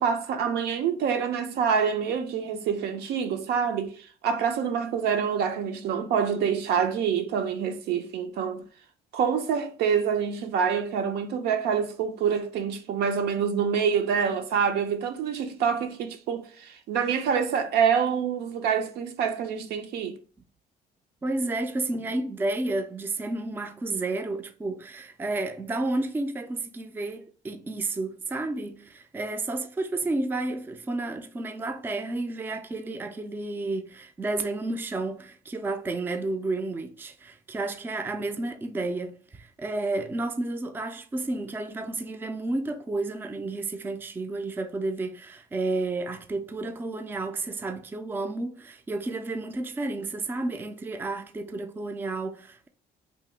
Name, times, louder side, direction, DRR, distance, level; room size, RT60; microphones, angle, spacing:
voice 1, 0.0-3.9 4.2-8.6 9.1-20.2, right 7 dB, 70° right, 0.5 m, -26 dB
voice 2, 21.2-52.7, right 2 dB, 10° right, 0.3 m, -31 dB
2.8 x 2.2 x 3.2 m
cardioid pair, 110°, 17 cm